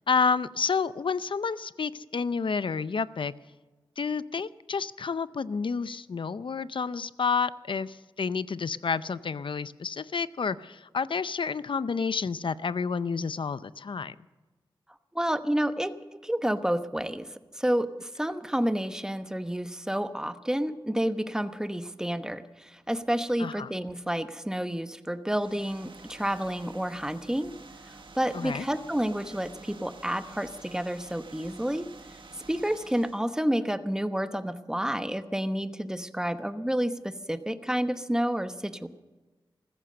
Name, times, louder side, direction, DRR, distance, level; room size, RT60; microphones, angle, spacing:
voice 1, 0.1-3.3 4.0-14.1 23.4-23.7 28.3-28.7, left 5 dB, 65° left, 16 dB, 0.6 m, -30 dB
voice 2, 15.1-15.9 16.2-17.3 17.5-27.5 28.1-31.9 32.5-38.9, equal, 5° right, 10 dB, 1.0 m, -29 dB
sound 1, 25.3-33.3, right 3 dB, 65° right, 1.5 m, -49 dB
14.5 x 14.5 x 6.7 m, 1.2 s
wide cardioid pair, 55°, 9 cm